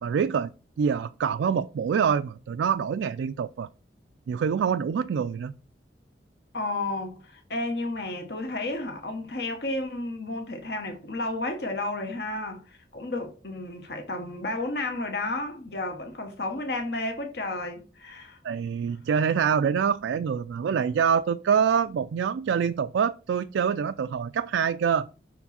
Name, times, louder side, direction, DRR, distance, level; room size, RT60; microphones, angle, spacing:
voice 1, 0.0-0.5 0.8-3.7 4.3-5.5 18.4-25.1, right 7 dB, 90° right, 0.3 m, -25 dB
voice 2, 6.5-18.4, left 2 dB, 65° left, 1.2 m, -32 dB
6.0 x 4.5 x 4.2 m
head